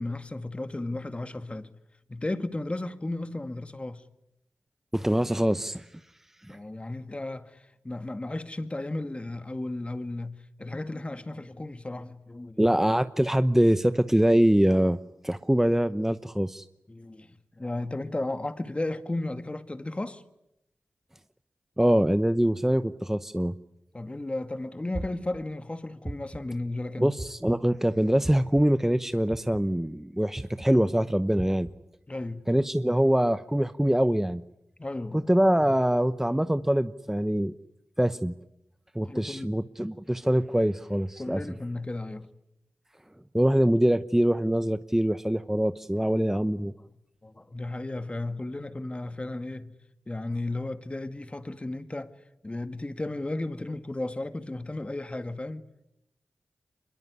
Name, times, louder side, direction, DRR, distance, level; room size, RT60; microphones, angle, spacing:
voice 1, 0.0-1.7 2.1-4.0 6.5-12.7 16.9-20.2 23.9-27.1 32.1-32.5 34.8-35.2 39.0-39.5 41.2-42.3 47.2-49.8 50.1-52.1 52.4-55.6, left 2 dB, 30° left, 2.1 m, -34 dB
voice 2, 4.9-5.9 6.4-6.6 12.6-15.0 15.2-16.6 21.8-23.5 27.0-31.7 32.5-34.4 35.1-37.5 38.0-38.3 38.9-41.4 43.3-46.7, right 1 dB, 10° right, 0.9 m, -24 dB
sound 1, 24.9-25.4 26.0-26.5 27.2-27.6 28.2-28.6 29.3-29.7 30.3-30.7 31.4-31.7, right 1 dB, 25° right, 3.6 m, -36 dB
24.5 x 22.0 x 9.7 m
cardioid pair, 45°, 4 cm